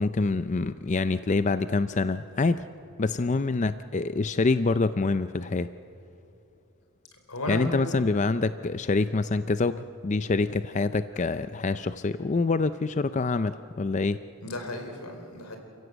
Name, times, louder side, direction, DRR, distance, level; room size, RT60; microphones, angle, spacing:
voice 1, 0.0-2.6 3.0-5.7 7.5-14.2, left 3 dB, 35° left, 12 dB, 0.4 m, -26 dB
voice 2, 7.3-7.7 14.4-15.6, left 1 dB, 85° left, 4 dB, 4.2 m, -34 dB
29.0 x 16.0 x 8.0 m, 2.8 s
head